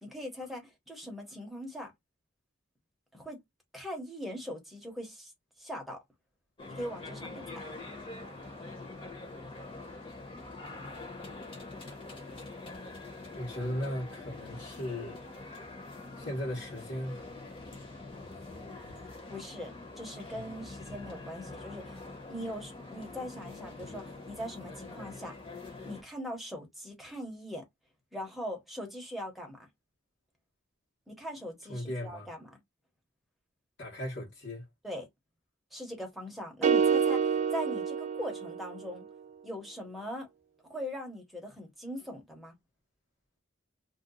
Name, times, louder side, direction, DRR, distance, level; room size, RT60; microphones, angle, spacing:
voice 1, 0.0-1.9 3.1-3.4 3.7-5.3 5.6-6.0 6.7-7.6 19.3-25.3 25.8-27.6 28.1-29.6 31.1-32.6 34.8-35.1 35.7-39.0 39.4-40.3 40.7-42.5, equal, ahead, 1.0 m, -41 dB
sound 1, 6.6-26.0, left 2 dB, 25° left, 1.2 m, -45 dB
voice 2, 13.3-15.2 16.2-17.2 31.7-32.3 33.8-34.6, left 1 dB, 55° left, 1.4 m, -37 dB
sound 2, 36.6-38.9, right 6 dB, 35° right, 0.3 m, -27 dB
2.7 x 2.4 x 3.8 m
head